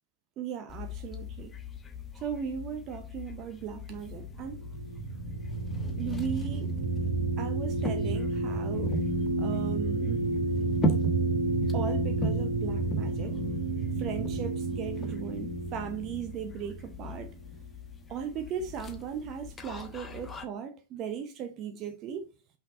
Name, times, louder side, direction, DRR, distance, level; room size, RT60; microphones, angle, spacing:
voice 1, 0.4-1.5 2.1-4.6 6.0-6.7 7.4-9.0 9.4-10.3 11.7-13.4 14.0-17.3 18.1-22.3, right 7 dB, 35° right, 0.8 m, -37 dB
sound 1, 0.7-20.4, left 1 dB, 20° left, 1.1 m, -39 dB
sound 2, 3.8-17.5, right 2 dB, 75° right, 2.0 m, -31 dB
5.7 x 5.5 x 4.1 m
figure-of-eight pair, 90°, 0 cm